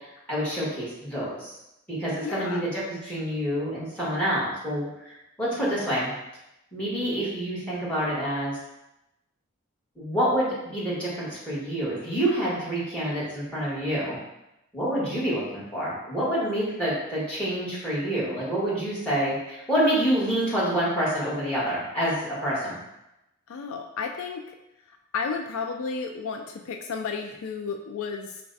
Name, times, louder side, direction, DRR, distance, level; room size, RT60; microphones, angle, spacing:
voice 1, 0.3-1.5 1.9-6.1 6.7-8.6 10.0-14.2 14.7-22.8, equal, 5° left, -8 dB, 1.5 m, -27 dB
voice 2, 2.2-2.6 23.5-24.4 25.1-28.4, left 5 dB, 70° left, 4 dB, 0.3 m, -32 dB
4.7 x 2.2 x 4.0 m, 0.90 s
head